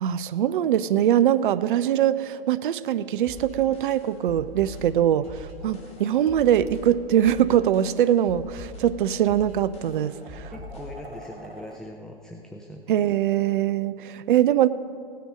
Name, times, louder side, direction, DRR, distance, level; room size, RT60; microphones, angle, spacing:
voice 1, 0.0-10.5 12.9-14.7, right 11 dB, 60° right, 15 dB, 0.5 m, -22 dB
sound 1, 3.2-11.1, left 1 dB, 20° left, 2.3 m, -43 dB
sound 2, 5.6-6.7 7.8-8.0 8.9-9.0 9.5-11.8, right 1 dB, 85° right, 1.6 m, -46 dB
voice 2, 10.5-13.0, left 1 dB, ahead, 3 dB, 0.4 m, -42 dB
17.0 x 9.4 x 5.1 m, 2.6 s
figure-of-eight pair, 110°, 30 cm